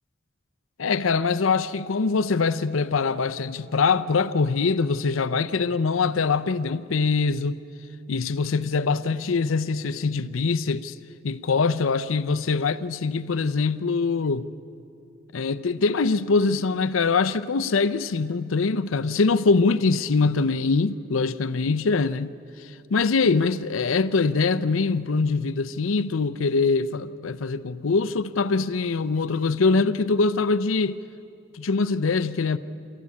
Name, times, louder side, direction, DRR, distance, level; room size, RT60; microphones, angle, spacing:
voice 1, 0.8-7.6 8.1-11.0 11.2-14.5 15.3-22.3 22.6-31.0 31.5-32.6, left 4 dB, 90° left, 0.6 m, -23 dB
27.5 x 13.5 x 8.4 m
head